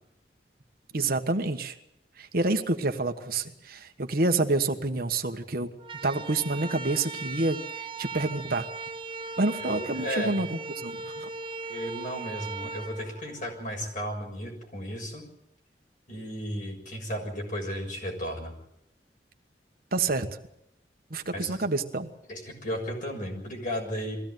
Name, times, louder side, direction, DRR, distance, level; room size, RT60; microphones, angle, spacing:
voice 1, 0.9-1.8 2.2-5.7 6.0-8.7 9.4-11.3 19.9-20.3 21.1-22.1, right 2 dB, 55° right, 6 dB, 1.4 m, -28 dB
sound 1, 5.8-13.9, right 4 dB, 30° right, 0.8 m, -38 dB
voice 2, 9.6-10.4 11.6-15.2 16.1-18.5 21.3-21.6 22.3-24.2, equal, 50° left, 1 dB, 6.7 m, -34 dB
21.5 x 16.0 x 9.4 m, 0.81 s
head